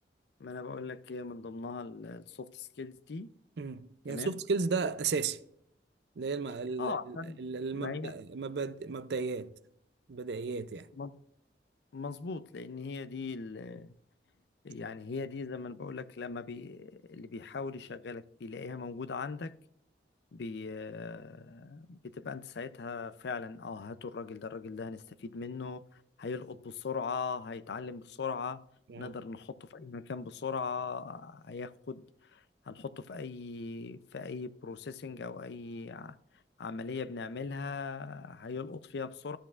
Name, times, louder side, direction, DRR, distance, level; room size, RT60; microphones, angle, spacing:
voice 1, 0.4-3.3 4.1-4.4 6.8-7.4 7.7-8.1 10.9-11.1 11.9-13.9 14.6-19.5 20.3-28.6 29.0-32.0 32.3-36.2 36.6-39.4, left 4 dB, 75° left, 0.5 m, -39 dB
voice 2, 3.6-5.4 6.2-9.5 10.1-10.9 28.9-29.1, right 4 dB, 70° right, 0.5 m, -34 dB
13.0 x 7.8 x 2.4 m
head